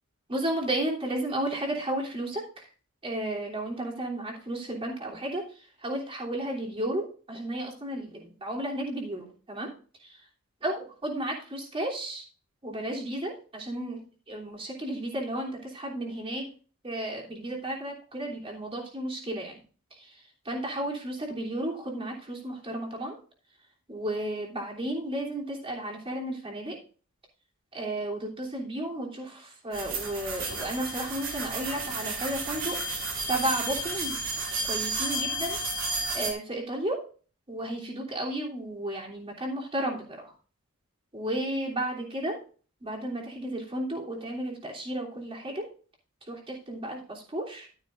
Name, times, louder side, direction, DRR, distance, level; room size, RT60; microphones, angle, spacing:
voice 1, 0.3-2.6 3.0-5.4 5.8-9.7 10.6-12.2 12.6-14.0 14.3-16.5 16.8-19.5 20.4-23.2 23.9-26.8 27.7-32.8 33.3-34.2 34.7-35.6 36.1-37.0 37.5-40.3 41.1-42.4 42.8-45.6 46.3-47.7, right 1 dB, 25° right, -2 dB, 3.1 m, -33 dB
sound 1, 29.7-36.3, right 2 dB, 60° right, 3.4 m, -32 dB
12.5 x 9.7 x 2.5 m, 0.39 s
head